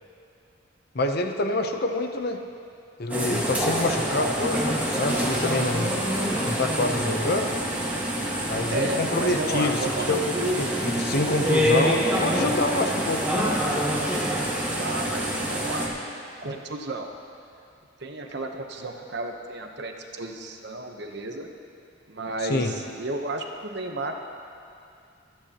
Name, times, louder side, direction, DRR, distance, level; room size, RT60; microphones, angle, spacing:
voice 1, 0.9-2.4 3.0-5.9 6.4-7.5 8.5-10.2 10.6-13.5 22.4-22.7, left 2 dB, 55° left, 5 dB, 0.8 m, -27 dB
sound 1, 3.1-15.9, equal, 10° right, 1.7 m, -26 dB
voice 2, 8.7-10.1 14.8-15.9 16.4-17.1 18.0-21.5 22.1-24.1, right 2 dB, 60° right, 3 dB, 1.0 m, -32 dB
25.0 x 9.5 x 3.0 m, 2.4 s
head